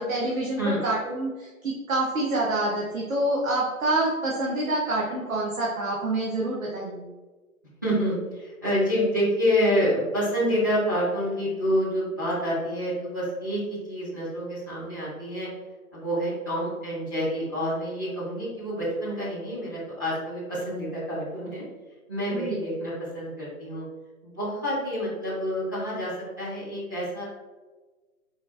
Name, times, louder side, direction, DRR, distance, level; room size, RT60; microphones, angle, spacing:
voice 1, 0.0-7.0 22.3-22.6, right 2 dB, 65° right, -4 dB, 1.0 m, -27 dB
voice 2, 7.8-15.5 15.9-21.6 22.1-23.9 24.2-27.2, equal, 15° right, -10 dB, 0.6 m, -28 dB
4.1 x 2.6 x 3.2 m, 1.3 s
hypercardioid pair, 155°, 43 cm